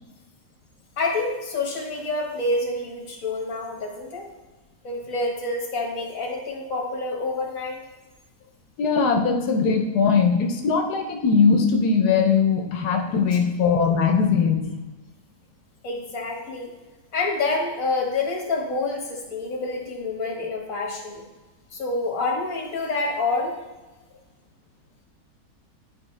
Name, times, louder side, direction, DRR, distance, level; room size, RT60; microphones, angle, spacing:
voice 1, 1.0-4.3 4.8-7.8 13.1-13.2 15.8-16.7 17.1-21.2 21.7-23.5, left 3 dB, 60° left, 0 dB, 1.8 m, -27 dB
voice 2, 8.8-14.7, left 5 dB, 85° left, 3 dB, 1.3 m, -20 dB
10.5 x 4.9 x 3.2 m, 1.2 s
omnidirectional pair, 1.6 m